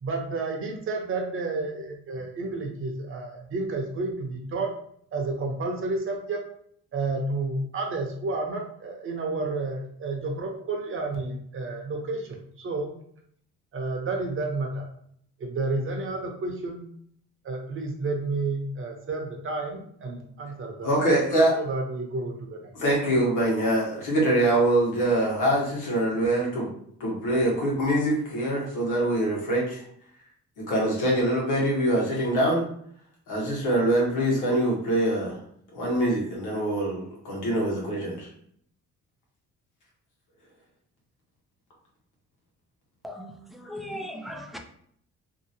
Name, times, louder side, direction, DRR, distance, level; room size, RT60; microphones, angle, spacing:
voice 1, 0.0-4.7 5.1-6.4 6.9-12.3 12.6-12.9 13.7-14.9 15.4-16.9 17.4-20.9 21.5-22.7, right 3 dB, 45° right, 0.8 m, -31 dB
voice 2, 20.8-21.6 22.8-26.7 27.0-29.8 30.6-32.6 33.3-35.4 35.7-38.3, right 1 dB, 90° left, 1.3 m, -24 dB
voice 3, 43.0-44.6, equal, ahead, 0.4 m, -38 dB
2.8 x 2.7 x 2.8 m
cardioid pair, 90°, 30 cm